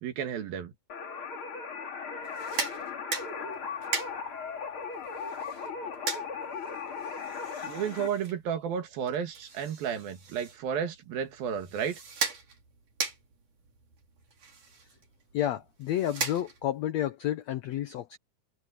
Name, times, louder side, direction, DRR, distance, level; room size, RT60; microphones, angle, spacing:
voice 1, 0.0-0.7 7.6-12.0, right 8 dB, 75° right, 3.7 m, -32 dB
sound 1, 0.9-8.1, left 5 dB, 40° left, 2.7 m, -37 dB
sound 2, 2.2-16.9, right 5 dB, 55° right, 6.0 m, -39 dB
voice 2, 15.3-18.2, left 12 dB, 85° left, 1.5 m, -30 dB
open air
omnidirectional pair, 4.2 m